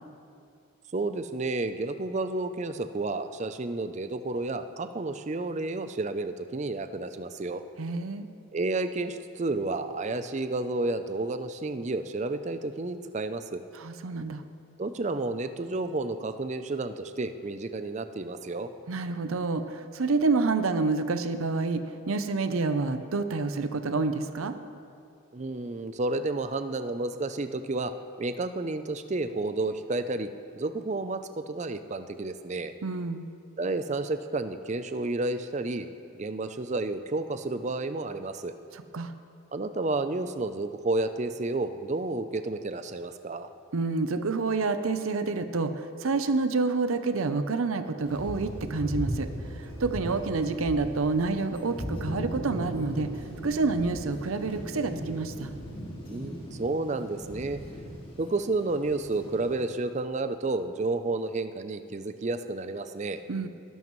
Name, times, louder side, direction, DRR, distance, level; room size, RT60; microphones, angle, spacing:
voice 1, 0.9-7.6 8.5-13.6 14.8-18.7 25.3-32.7 33.6-35.9 36.1-38.5 39.5-43.5 56.1-57.6 58.2-63.2, right 2 dB, 35° right, 10 dB, 0.5 m, -31 dB
voice 2, 7.8-8.2 13.8-14.4 18.9-24.6 32.8-33.3 38.7-39.1 43.7-53.1 53.4-55.5 63.3-63.5, right 3 dB, 85° right, 9 dB, 0.6 m, -28 dB
Thunder, 48.1-59.7, equal, 25° left, 2.2 m, -38 dB
19.5 x 11.0 x 3.1 m, 2.4 s
head